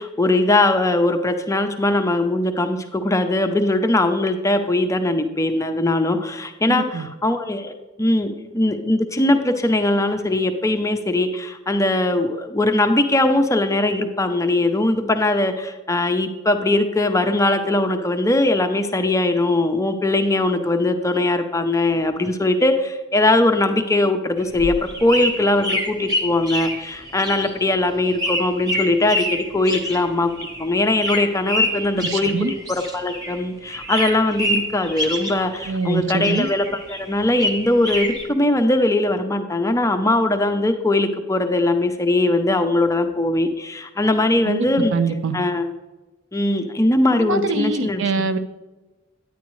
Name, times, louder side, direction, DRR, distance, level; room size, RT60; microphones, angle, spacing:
voice 1, 0.0-7.7 8.0-30.3 30.6-32.3 32.7-36.7 37.0-44.9 45.3-45.6 46.3-48.3, left 2 dB, 15° left, 6 dB, 0.5 m, -20 dB
voice 2, 6.7-7.1 31.9-32.5 35.7-36.5 44.4-45.4 47.2-48.4, right 4 dB, 65° right, 9 dB, 0.6 m, -24 dB
sound 1, 24.4-33.4 33.7-35.9 36.2-38.3, equal, 20° right, 1.0 m, -27 dB
9.5 x 9.2 x 3.1 m, 1.1 s
head